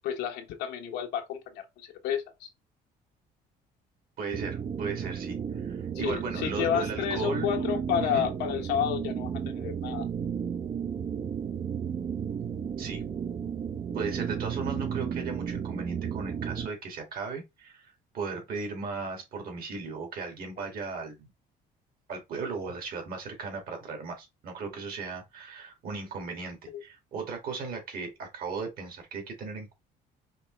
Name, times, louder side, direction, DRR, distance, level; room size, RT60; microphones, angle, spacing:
voice 1, 0.0-2.5 5.9-10.1 26.7-26.8, left 9 dB, 85° left, 1.1 m, -31 dB
voice 2, 4.2-7.5 8.0-8.3 12.8-13.0 13.9-21.3 22.1-29.7, right 4 dB, 60° right, 2.1 m, -37 dB
sound 1, 4.3-16.7, right 7 dB, 35° right, 0.5 m, -33 dB
5.1 x 3.1 x 3.2 m
cardioid pair, 110°, 17 cm